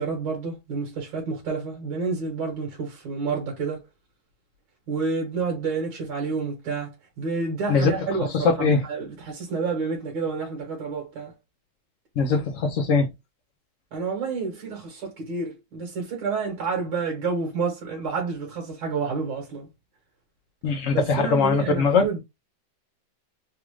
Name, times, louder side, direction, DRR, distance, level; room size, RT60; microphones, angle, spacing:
voice 1, 0.0-3.8 4.9-11.3 13.9-19.7 20.9-22.2, right 4 dB, 70° right, 2.1 m, -29 dB
voice 2, 8.3-8.8 12.2-13.1 20.6-22.1, left 4 dB, 90° left, 0.6 m, -21 dB
4.1 x 2.4 x 3.0 m
omnidirectional pair, 2.2 m